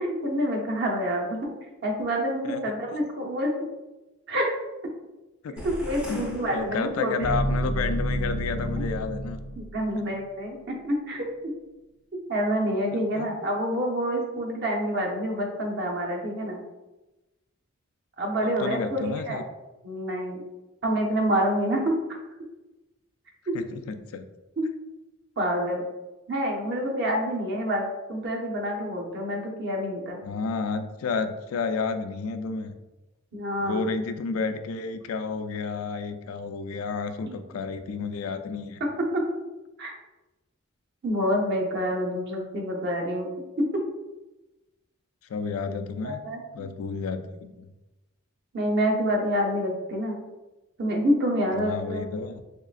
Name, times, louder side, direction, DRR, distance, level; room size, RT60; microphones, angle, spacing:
voice 1, 0.0-1.5 1.8-3.5 4.3-4.5 5.6-7.3 9.6-10.6 10.8-11.3 12.3-16.6 18.2-19.4 19.8-20.4 20.8-22.0 23.5-23.6 24.6-24.7 25.4-25.8 26.3-30.2 33.3-33.9 37.3-37.4 39.0-39.2 39.8-39.9 41.0-43.3 43.6-43.8 46.0-46.7 48.5-50.2 50.8-52.1, equal, 55° right, 0 dB, 0.7 m, -27 dB
sound 1, 5.6-7.4, equal, 5° right, 0.4 m, -40 dB
sound 2, 6.0-10.1, equal, 85° right, 1.4 m, -30 dB
voice 2, 6.5-9.4 10.0-10.1 12.9-13.3 18.6-19.4 23.5-24.2 30.2-32.7 33.6-38.8 45.3-46.2 46.5-47.7 51.6-52.4, left 4 dB, 85° left, 9 dB, 0.3 m, -31 dB
3.6 x 3.1 x 2.4 m, 1.1 s
head